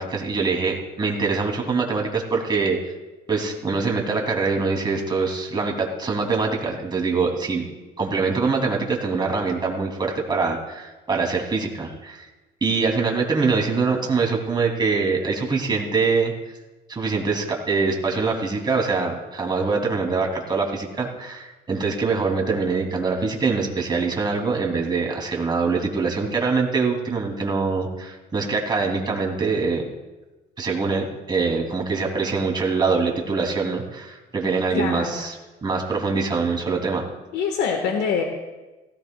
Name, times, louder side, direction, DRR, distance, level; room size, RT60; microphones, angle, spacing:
voice 1, 0.0-2.8 3.3-7.7 8.0-12.3 12.6-16.3 16.9-29.8 30.6-35.4 35.6-37.0, right 4 dB, 25° right, 1 dB, 2.7 m, -24 dB
voice 2, 34.7-35.3 37.3-38.2, left 6 dB, 80° left, 3 dB, 1.4 m, -24 dB
18.0 x 16.5 x 2.3 m, 1.1 s
cardioid pair, 110°, 17 cm